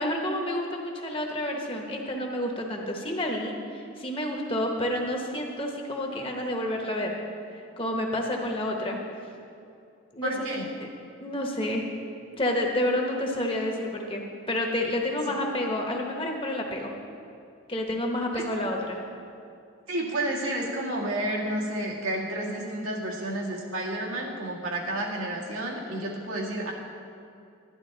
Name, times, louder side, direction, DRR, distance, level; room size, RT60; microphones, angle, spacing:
voice 1, 0.0-7.1 7.8-9.0 10.1-10.5 11.2-11.9 12.4-16.9 17.7-19.0, left 1 dB, 25° left, 1 dB, 1.0 m, -29 dB
voice 2, 10.2-10.7 18.3-18.4 19.9-26.7, right 1 dB, 90° right, -3 dB, 1.9 m, -30 dB
11.0 x 11.0 x 3.9 m, 2.6 s
head